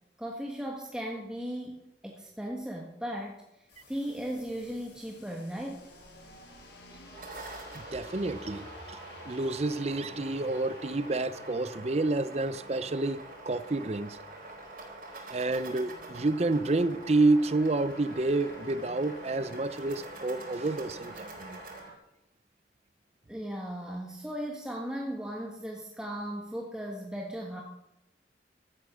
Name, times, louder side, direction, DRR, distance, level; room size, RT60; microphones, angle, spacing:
voice 1, 0.2-3.4 3.9-5.9 23.3-27.6, equal, 5° right, 1.5 m, -37 dB
sound 1, 3.7-21.9, left 1 dB, 70° left, 6.3 m, -51 dB
sound 2, 6.9-21.8, right 2 dB, 50° right, 4.4 m, -46 dB
voice 2, 7.7-9.0 9.3-14.2 15.3-21.6, right 2 dB, 35° right, 0.6 m, -29 dB
15.5 x 13.5 x 6.3 m
head